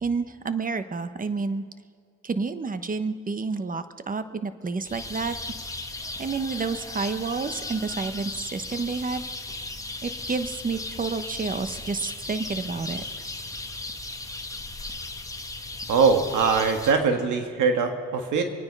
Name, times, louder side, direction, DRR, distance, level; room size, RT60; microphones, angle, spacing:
voice 1, 0.0-1.6 2.2-5.4 6.2-9.2 10.0-13.0, right 4 dB, 30° right, 11 dB, 1.0 m, -29 dB
sound 1, 4.8-16.9, left 2 dB, 10° left, 1.3 m, -36 dB
voice 2, 15.9-18.4, right 5 dB, 80° right, 5 dB, 1.7 m, -22 dB
25.5 x 9.7 x 5.4 m, 2.2 s
cardioid pair, 90°, 30 cm